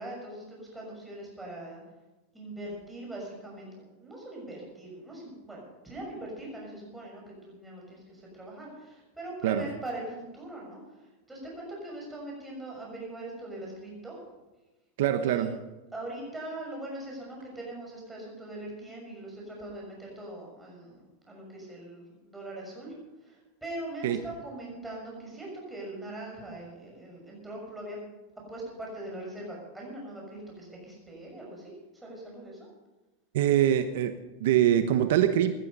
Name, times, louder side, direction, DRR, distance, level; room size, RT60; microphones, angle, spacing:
voice 1, 0.0-1.8 2.3-14.2 15.2-15.5 15.9-22.9 23.2-28.0 28.5-32.7, right 1 dB, 5° right, -2 dB, 6.3 m, -41 dB
voice 2, 15.0-15.6 24.0-24.2 33.3-35.5, right 11 dB, 75° right, 9 dB, 1.0 m, -24 dB
17.0 x 11.5 x 5.5 m, 1.1 s
supercardioid pair, 150°, 0 cm